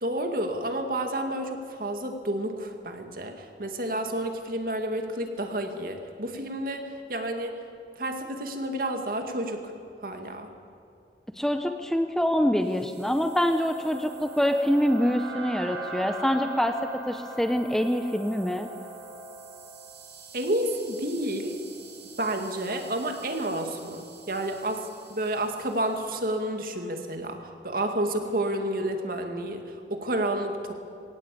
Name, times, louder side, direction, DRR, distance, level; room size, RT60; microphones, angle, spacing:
voice 1, 0.0-7.5 8.0-9.7 10.0-10.5 20.3-21.6 22.2-29.6 29.9-30.7, right 1 dB, 55° right, 5 dB, 2.2 m, -30 dB
voice 2, 11.4-18.7, equal, 5° left, 6 dB, 0.8 m, -25 dB
sound 1, 12.7-26.1, right 3 dB, 85° right, 5.7 m, -43 dB
20.5 x 18.0 x 8.5 m, 2.4 s
head